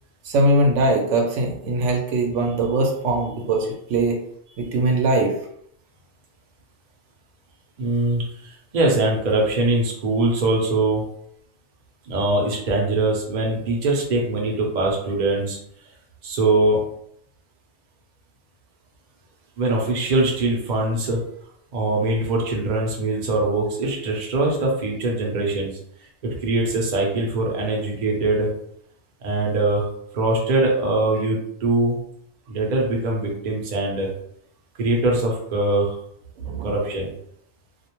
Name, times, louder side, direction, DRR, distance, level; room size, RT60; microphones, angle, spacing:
voice 1, 0.2-4.2 4.6-5.3 36.4-36.7, right 2 dB, 80° right, 1 dB, 0.9 m, -21 dB
voice 2, 7.8-11.0 12.1-15.6 16.2-16.8 19.6-21.2 21.7-25.7 26.2-28.5 29.2-29.9 30.1-32.0 32.5-34.1 34.8-35.9 36.6-37.1, right 2 dB, 45° right, -1 dB, 0.6 m, -22 dB
2.4 x 2.0 x 2.9 m, 0.70 s
omnidirectional pair, 1.3 m